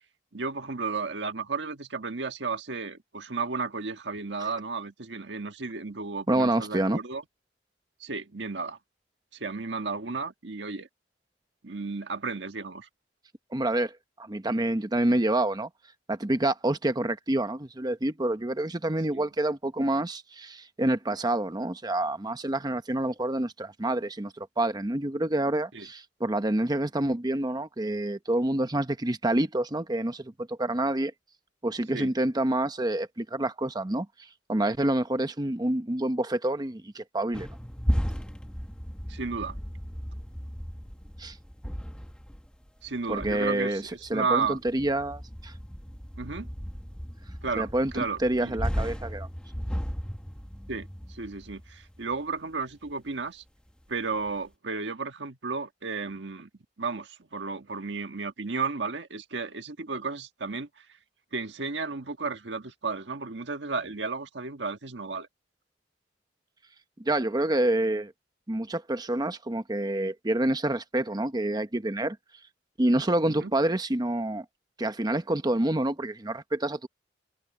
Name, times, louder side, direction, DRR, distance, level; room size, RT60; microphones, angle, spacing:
voice 1, 0.3-7.2 8.0-8.8 9.3-10.9 11.6-12.9 19.1-19.2 25.7-25.9 31.9-32.1 39.1-39.6 42.8-44.6 46.2-46.5 47.4-47.7 47.9-48.6 50.7-53.4 53.9-56.5 56.8-60.7 61.3-65.3 73.2-73.5, right 4 dB, 90° right, 1.5 m, -33 dB
voice 2, 6.3-7.0 13.5-15.7 16.1-31.1 31.6-34.1 34.5-37.5 41.2-41.4 43.1-43.8 44.1-45.5 47.6-49.3 67.0-68.1 68.5-72.2 72.8-74.4 74.8-76.9, right 1 dB, 25° right, 0.9 m, -27 dB
sound 1, 37.3-52.3 52.7-52.9 53.7-54.3, equal, 5° left, 1.3 m, -35 dB
head